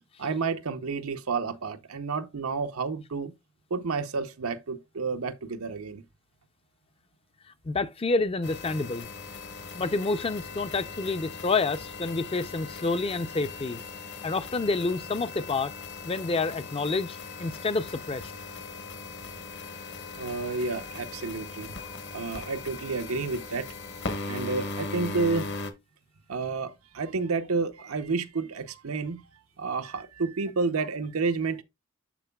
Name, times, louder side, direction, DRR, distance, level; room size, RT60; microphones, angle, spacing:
voice 1, 0.2-3.3 3.7-6.0 20.2-21.7 22.1-23.7 24.3-25.5 26.3-29.2 29.6-31.6, right 4 dB, 85° right, 0.7 m, -30 dB
voice 2, 7.6-9.1 9.7-13.8 14.2-15.7 16.1-18.3, left 3 dB, 25° left, 0.4 m, -28 dB
sound 1, 8.4-25.7, left 3 dB, 55° left, 1.1 m, -39 dB
12.0 x 4.5 x 2.2 m
head